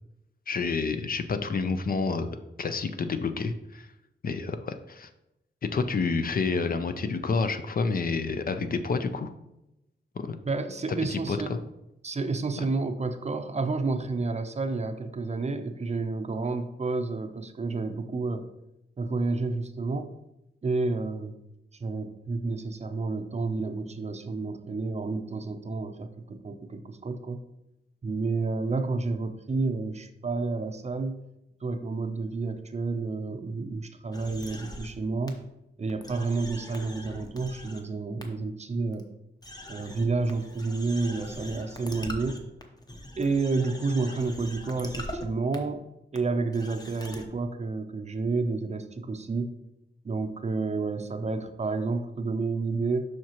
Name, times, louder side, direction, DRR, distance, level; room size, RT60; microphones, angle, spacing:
voice 1, 0.5-3.9 4.2-5.1 5.7-9.3 10.2-10.4 10.9-11.6 12.6-12.7, left 4 dB, 50° left, 9 dB, 0.5 m, -29 dB
voice 2, 10.4-11.6 12.0-18.5 19.0-20.1 20.6-21.3 21.8-27.4 28.0-31.2 31.6-35.4 35.8-39.1 39.7-42.4 43.2-45.8 46.1-49.5 50.0-53.1, right 3 dB, 35° right, 8 dB, 0.5 m, -30 dB
sound 1, 34.1-34.9 35.3-35.4 35.9-37.8 38.2-38.3 38.9-39.0 39.4-45.2 45.5-45.6 46.1-46.2 46.5-47.3, left 1 dB, 20° left, 0.8 m, -42 dB
7.5 x 5.8 x 2.9 m, 0.89 s
wide cardioid pair, 135°, 19 cm